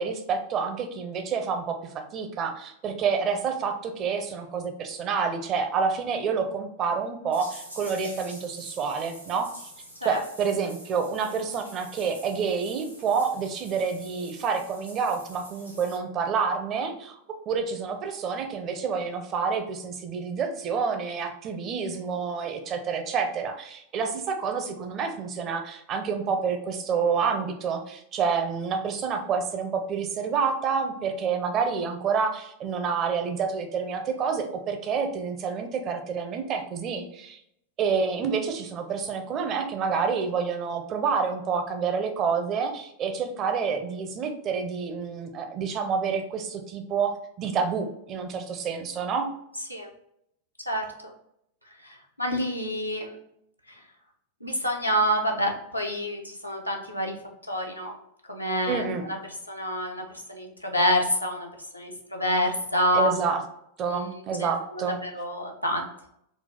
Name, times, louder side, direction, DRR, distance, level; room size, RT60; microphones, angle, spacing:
voice 1, 0.0-9.7 10.0-17.2 17.5-37.4 37.8-49.3 58.7-59.1 62.9-63.4 63.8-65.0, right 5 dB, 35° right, 6 dB, 0.6 m, -28 dB
sound 1, 7.3-16.0, equal, 90° right, 0.8 m, -46 dB
voice 2, 51.8-53.2 54.4-57.2 57.5-57.9 58.3-59.2 59.5-63.1 63.9-64.0 64.4-65.9, equal, 90° left, 0 dB, 0.5 m, -28 dB
4.0 x 2.3 x 3.4 m, 0.75 s
figure-of-eight pair, 90°, 0 cm